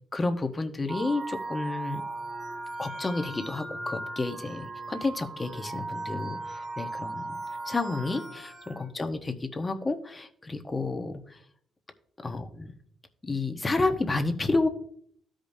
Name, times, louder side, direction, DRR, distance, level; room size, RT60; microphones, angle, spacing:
voice 1, 0.1-2.0 2.8-7.4 7.6-11.4 12.2-12.7 13.2-14.7, left 3 dB, 25° left, 6 dB, 1.0 m, -30 dB
sound 1, 0.9-8.8, right 2 dB, 45° right, 1.7 m, -37 dB
13.0 x 5.1 x 2.7 m, 0.64 s
cardioid pair, 75°, 0 cm